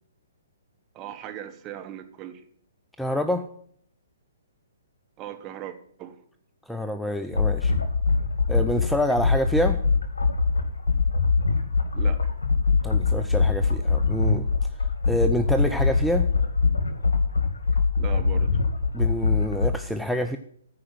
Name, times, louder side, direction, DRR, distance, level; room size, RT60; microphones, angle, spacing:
voice 1, 0.9-2.4 5.2-6.2 11.9-12.2 18.0-18.5, right 11 dB, 25° right, 6 dB, 1.3 m, -38 dB
voice 2, 3.0-3.5 6.7-7.7 8.5-9.8 12.8-14.4 15.1-16.3 18.9-20.4, equal, ahead, 9 dB, 0.5 m, -27 dB
sound 1, 7.3-19.7, left 4 dB, 75° left, 1.7 m, -23 dB
14.5 x 4.9 x 7.5 m, 0.64 s
figure-of-eight pair, 125°, 0 cm